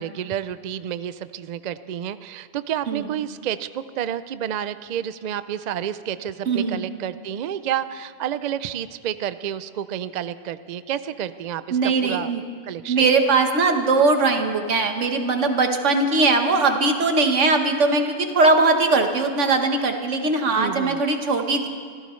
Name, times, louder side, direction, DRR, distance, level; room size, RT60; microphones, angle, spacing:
voice 1, 0.0-12.3 12.6-13.1 20.5-21.0, right 10 dB, 60° right, 13 dB, 0.4 m, -30 dB
voice 2, 6.5-6.9 11.7-12.4 12.9-21.7, right 3 dB, 80° right, 5 dB, 1.6 m, -20 dB
25.5 x 14.5 x 3.2 m, 2.1 s
omnidirectional pair, 1.2 m